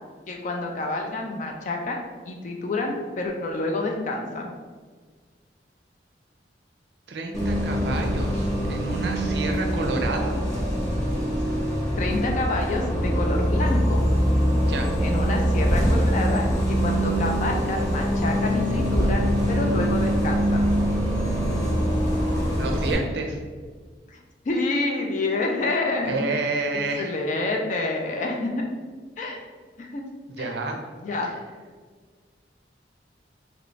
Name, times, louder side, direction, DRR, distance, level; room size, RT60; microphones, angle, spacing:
voice 1, 0.3-4.5 12.0-14.0 15.0-20.6 24.5-26.3 27.0-28.7 29.2-29.4 29.8-30.0 30.4-30.5 31.0-31.3, left 2 dB, 45° left, 1 dB, 0.4 m, -28 dB
voice 2, 7.1-10.4 14.6-14.9 22.6-23.4 26.0-27.1 30.3-30.8, right 2 dB, 65° right, 3 dB, 0.5 m, -29 dB
Bus, 7.3-22.9, equal, 20° left, 0.7 m, -23 dB
3.0 x 2.6 x 3.1 m, 1.5 s
head